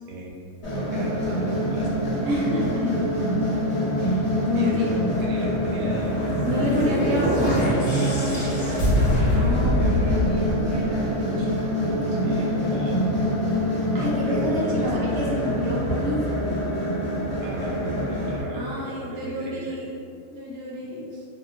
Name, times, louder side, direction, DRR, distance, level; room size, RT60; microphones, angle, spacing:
voice 1, 0.1-0.5 0.8-1.9 4.5-6.4 6.7-7.2 7.7-8.2 9.3-11.5 12.2-13.0 14.3-14.9 15.2-15.4 17.4-19.8 20.8-21.3, right 2 dB, 90° right, -4 dB, 1.1 m, -35 dB
sound 1, 0.6-18.4, equal, 30° left, 1.0 m, -26 dB
voice 2, 2.3-3.3 4.0-4.9 6.4-11.4 13.9-16.4 18.5-20.0 20.3-21.1, left 1 dB, 60° right, -5 dB, 0.7 m, -29 dB
sound 2, 5.9-11.3, equal, 60° left, 1.0 m, -24 dB
2.8 x 2.8 x 2.4 m, 2.3 s
omnidirectional pair, 1.4 m